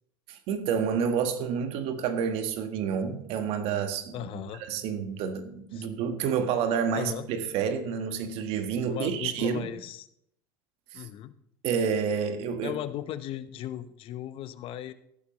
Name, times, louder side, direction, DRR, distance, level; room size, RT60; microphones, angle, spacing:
voice 1, 0.3-4.3 4.7-9.7 10.9-11.1 11.6-12.8, right 7 dB, 60° right, 7 dB, 1.5 m, -29 dB
voice 2, 4.1-4.6 5.7-6.0 6.9-7.3 8.9-10.1 10.9-11.3 12.6-14.9, left 12 dB, 55° left, 13 dB, 0.9 m, -37 dB
15.5 x 11.5 x 3.1 m, 0.73 s
hypercardioid pair, 80°, 11 cm